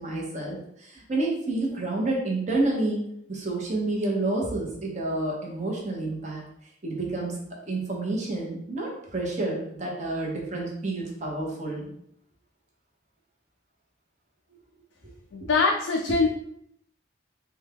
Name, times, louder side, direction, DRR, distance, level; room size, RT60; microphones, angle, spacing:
voice 1, 0.0-6.4 6.8-7.4 7.7-11.9 15.4-15.5 16.1-16.2, right 2 dB, 40° right, -2 dB, 0.8 m, -29 dB
voice 2, 15.3-16.3, left 4 dB, 85° left, 2 dB, 0.3 m, -23 dB
3.5 x 2.2 x 3.4 m, 0.73 s
head